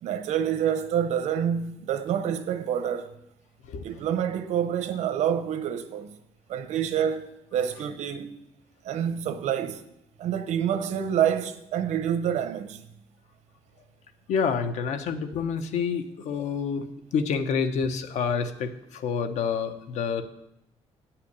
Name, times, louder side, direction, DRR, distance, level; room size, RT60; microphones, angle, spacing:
voice 1, 0.0-3.1 3.8-6.2 6.5-8.3 8.8-9.8 10.2-12.8, right 9 dB, 85° right, 0.8 m, -27 dB
voice 2, 14.3-16.8 17.1-20.2, left 6 dB, 90° left, 0.9 m, -28 dB
9.2 x 5.8 x 8.1 m
cardioid pair, 160°, 12 cm